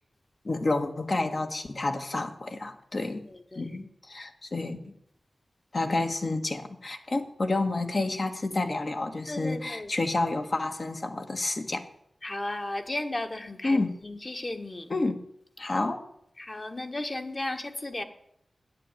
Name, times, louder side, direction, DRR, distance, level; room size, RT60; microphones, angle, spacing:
voice 1, 0.4-3.2 3.5-4.9 5.7-11.9 13.6-13.9 14.9-15.2 15.6-16.0, left 2 dB, 55° left, 5 dB, 1.7 m, -29 dB
voice 2, 3.3-3.7 9.3-9.9 12.2-14.9 16.4-18.0, left 2 dB, 40° left, 4 dB, 1.6 m, -35 dB
10.5 x 8.9 x 9.0 m, 0.72 s
cardioid pair, 50°, 0 cm